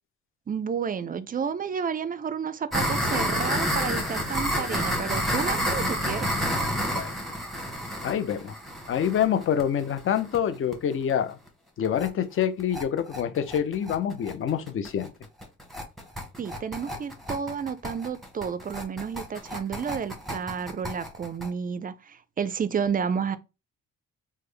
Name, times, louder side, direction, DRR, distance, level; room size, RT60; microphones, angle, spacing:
voice 1, 0.5-6.3 16.4-23.4, right 6 dB, 30° right, 0.4 m, -31 dB
sound 1, 2.7-10.4 10.7-10.8 11.1-11.2 11.5-11.6 11.8-12.1 12.4-21.5, equal, ahead, 0.9 m, -30 dB
voice 2, 8.0-8.5 8.9-11.4 11.8-15.1, left 9 dB, 45° left, 0.5 m, -26 dB
3.4 x 2.1 x 3.3 m
cardioid pair, 90°, 30 cm